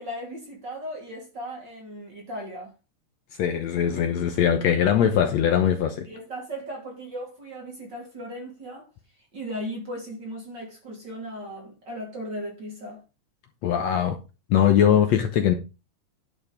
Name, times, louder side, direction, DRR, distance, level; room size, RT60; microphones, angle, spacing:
voice 1, 0.0-2.7 6.0-8.9 9.3-13.0, equal, 35° right, 3.3 m, -37 dB
voice 2, 3.4-6.1 13.6-14.2 14.5-15.5, left 9 dB, 65° left, 2.0 m, -21 dB
11.0 x 5.2 x 5.1 m
omnidirectional pair, 3.5 m